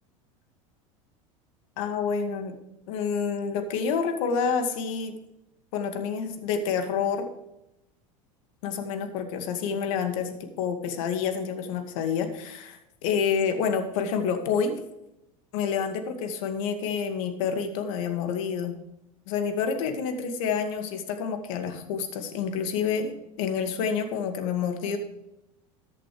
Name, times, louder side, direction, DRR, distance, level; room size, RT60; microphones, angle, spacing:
voice 1, 1.8-2.6 2.9-5.1 5.7-7.3 8.6-14.8 15.5-18.7 19.3-25.0, left 6 dB, 70° left, 6 dB, 2.2 m, -28 dB
14.0 x 8.4 x 3.4 m, 0.86 s
hypercardioid pair, 95°, 18 cm